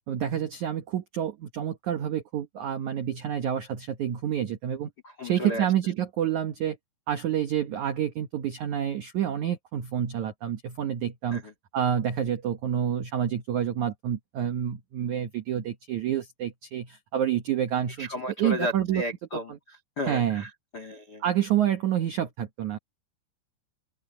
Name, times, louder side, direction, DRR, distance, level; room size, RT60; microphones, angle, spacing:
voice 1, 0.1-4.9 5.2-6.8 7.1-11.4 11.7-18.1 18.4-19.0 19.5-19.6 20.1-20.4 21.2-22.8, right 10 dB, 80° right, 1.7 m, -28 dB
voice 2, 5.0-5.7 11.3-11.5 18.0-21.2, equal, 65° left, 1.0 m, -34 dB
open air
omnidirectional pair, 5.3 m